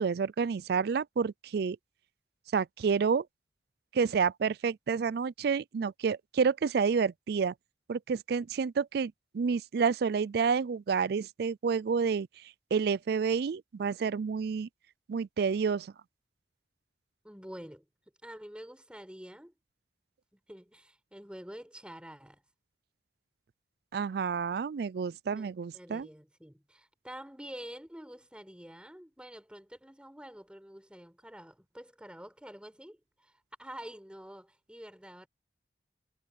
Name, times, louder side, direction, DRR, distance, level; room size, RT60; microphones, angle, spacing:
voice 1, 0.0-1.8 2.5-3.3 3.9-7.5 7.9-12.3 12.7-14.7 15.1-15.9 23.9-26.1, right 5 dB, 60° right, 0.4 m, -29 dB
voice 2, 17.2-17.9 18.2-19.5 20.3-22.4 25.3-25.5 25.7-35.3, equal, 5° right, 5.3 m, -47 dB
head